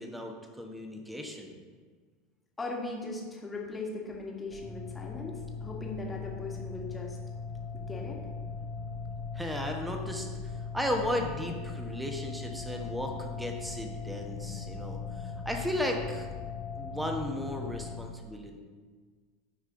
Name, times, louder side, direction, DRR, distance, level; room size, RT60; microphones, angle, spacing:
voice 1, 0.0-1.5 9.3-10.3 10.7-16.3 16.7-18.6, left 1 dB, 5° right, 3 dB, 1.1 m, -35 dB
voice 2, 2.6-7.2 7.7-8.2, left 3 dB, 15° left, -1 dB, 1.6 m, -39 dB
sound 1, 4.5-18.0, left 4 dB, 35° left, 1.2 m, -39 dB
11.0 x 4.9 x 3.8 m, 1.5 s
figure-of-eight pair, 80°, 0 cm